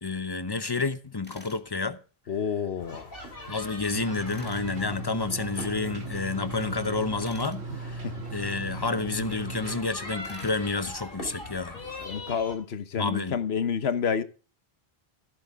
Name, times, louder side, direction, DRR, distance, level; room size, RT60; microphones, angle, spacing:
voice 1, 0.0-2.0 3.5-8.1 8.3-11.8 13.0-13.4, left 3 dB, 25° left, 0.7 m, -30 dB
Tools, 1.2-1.6 4.3-4.7 7.2-7.6 10.2-10.7, left 1 dB, 10° left, 1.9 m, -48 dB
voice 2, 2.3-3.1 8.0-8.1 12.0-14.2, left 7 dB, 75° left, 1.2 m, -29 dB
sound 1, 2.8-12.6, left 1 dB, 60° left, 3.3 m, -42 dB
sound 2, 3.9-9.8, right 3 dB, 85° right, 1.6 m, -37 dB
15.0 x 8.5 x 3.5 m
omnidirectional pair, 1.1 m